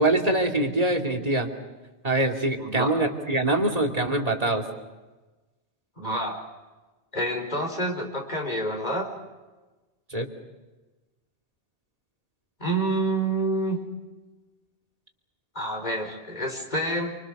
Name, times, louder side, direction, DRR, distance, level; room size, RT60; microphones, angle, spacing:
voice 1, 0.0-1.5 2.0-4.6 10.1-10.3, right 2 dB, 35° right, 2 dB, 2.8 m, -24 dB
voice 2, 2.6-3.0 6.0-6.4 7.1-9.1 12.6-13.8 15.5-17.2, right 1 dB, 40° left, 3 dB, 4.9 m, -28 dB
27.5 x 25.5 x 6.6 m, 1.2 s
omnidirectional pair, 1.1 m